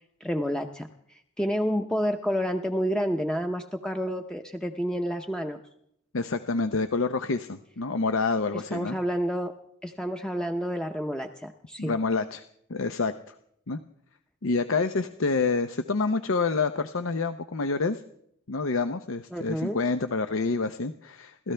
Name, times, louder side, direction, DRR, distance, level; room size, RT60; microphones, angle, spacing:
voice 1, 0.2-0.9 1.4-5.6 8.5-9.5 9.8-11.9 19.3-19.8, equal, 5° left, 4 dB, 0.7 m, -29 dB
voice 2, 6.1-9.0 11.8-12.4 12.7-13.3 13.7-13.8 14.4-18.0 18.5-21.5, left 4 dB, 80° left, 10 dB, 0.7 m, -27 dB
28.0 x 14.0 x 3.3 m, 0.72 s
head